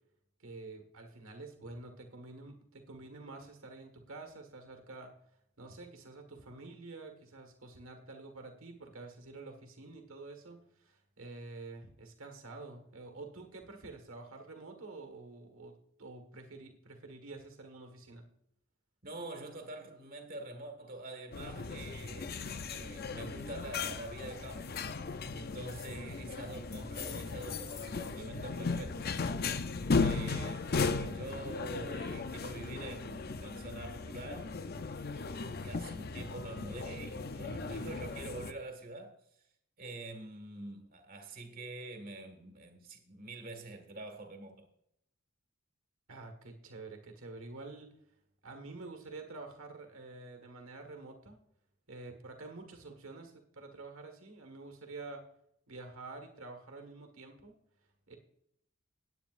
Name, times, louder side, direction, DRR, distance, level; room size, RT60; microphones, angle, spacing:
voice 1, 0.4-5.1 5.6-18.3 46.1-48.0 48.4-51.4 51.9-55.2 55.7-57.6 58.1-58.2, right 3 dB, 65° right, 1.7 m, -48 dB
voice 2, 19.0-24.8 25.3-29.2 30.0-34.5 35.6-39.1 39.8-44.6, right 2 dB, 40° right, 1.7 m, -45 dB
sound 1, 21.3-38.5, left 4 dB, 45° left, 0.6 m, -36 dB
17.5 x 9.0 x 2.5 m
head